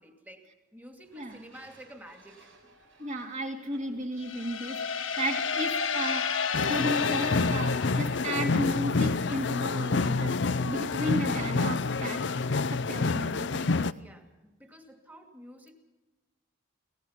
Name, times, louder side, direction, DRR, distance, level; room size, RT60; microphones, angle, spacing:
voice 1, 0.0-2.5 14.0-15.7, equal, 10° right, 4 dB, 2.4 m, -50 dB
sound 1, 1.0-6.5, right 2 dB, 75° right, 6.9 m, -59 dB
voice 2, 3.0-12.2 12.7-13.9, equal, 40° right, 3 dB, 2.6 m, -34 dB
sound 2, 4.2-8.9, left 6 dB, 90° left, 1.5 m, -31 dB
sound 3, 6.5-13.9, left 3 dB, 60° left, 0.6 m, -28 dB
24.5 x 18.5 x 5.9 m, 1.1 s
head